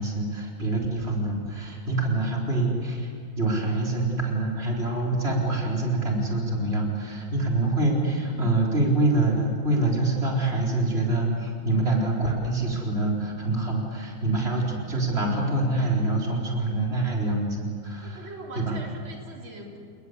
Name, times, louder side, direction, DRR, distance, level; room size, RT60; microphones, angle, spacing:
voice 1, 0.0-3.1 3.4-18.3 18.6-18.8, right 2 dB, 30° right, -1 dB, 4.5 m, -25 dB
voice 2, 18.0-19.8, right 2 dB, 85° right, 0 dB, 4.2 m, -42 dB
29.5 x 20.0 x 8.2 m, 2.4 s
omnidirectional pair, 2.1 m